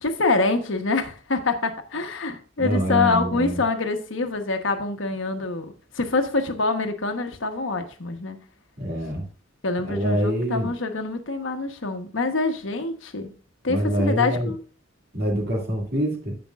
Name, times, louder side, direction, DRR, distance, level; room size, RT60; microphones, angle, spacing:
voice 1, 0.0-8.4 9.6-13.3 13.6-14.6, left 3 dB, 65° left, 1.2 m, -25 dB
voice 2, 2.6-3.6 8.8-9.2 9.8-10.7 13.7-14.5 15.1-16.4, equal, 50° right, 2.5 m, -25 dB
14.5 x 5.2 x 2.4 m
head